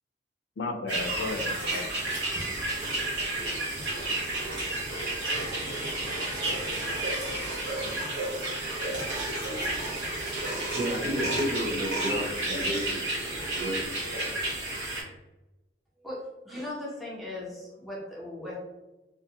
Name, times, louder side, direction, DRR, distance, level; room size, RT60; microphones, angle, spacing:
voice 1, 0.6-2.2 9.3-9.6, left 3 dB, 80° left, 5 dB, 0.4 m, -35 dB
sound 1, 0.9-15.0, right 2 dB, 90° right, 0.9 m, -31 dB
voice 2, 10.7-13.9, equal, 40° right, -5 dB, 0.9 m, -32 dB
voice 3, 16.0-18.6, left 1 dB, ahead, -6 dB, 0.6 m, -38 dB
2.6 x 2.2 x 2.8 m, 1.0 s
head